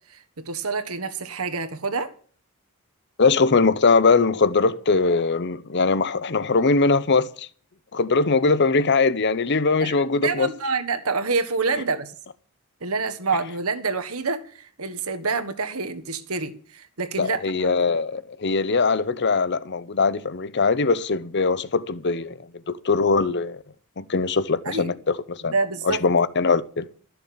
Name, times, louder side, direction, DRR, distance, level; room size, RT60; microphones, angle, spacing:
voice 1, 0.1-2.1 9.8-9.9 10.2-12.1 12.8-17.7 24.6-24.9 25.5-26.0, right 4 dB, 75° right, 1.5 m, -27 dB
voice 2, 3.2-7.5 7.9-10.5 17.2-22.4 22.7-23.6 24.0-25.5 25.8-26.9, left 4 dB, 50° left, 0.8 m, -21 dB
13.0 x 6.8 x 8.6 m
head